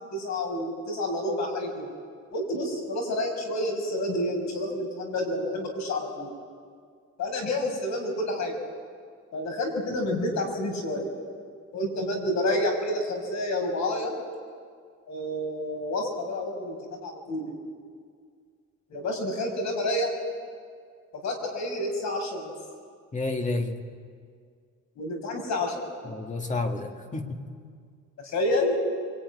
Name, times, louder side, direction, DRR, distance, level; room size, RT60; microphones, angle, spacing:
voice 1, 0.1-1.9 2.3-6.3 7.2-8.5 9.3-11.1 11.7-14.2 15.1-16.8 17.0-17.5 18.9-20.1 21.2-22.5 25.0-25.7 28.2-28.7, left 1 dB, 70° left, 2 dB, 6.5 m, -29 dB
voice 2, 23.1-23.8 26.0-27.5, left 2 dB, 25° left, 3 dB, 2.1 m, -30 dB
24.5 x 24.0 x 9.8 m, 2.1 s
cardioid pair, 165°, 29 cm